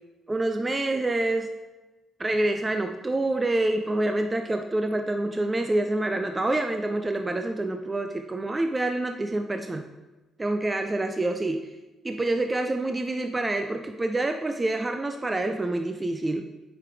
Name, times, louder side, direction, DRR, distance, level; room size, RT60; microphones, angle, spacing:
voice 1, 0.3-1.5 2.2-9.8 10.4-11.7 12.0-16.5, right 2 dB, 15° right, 6 dB, 0.4 m, -27 dB
8.6 x 5.2 x 4.7 m, 1.1 s
cardioid pair, 160°, 0 cm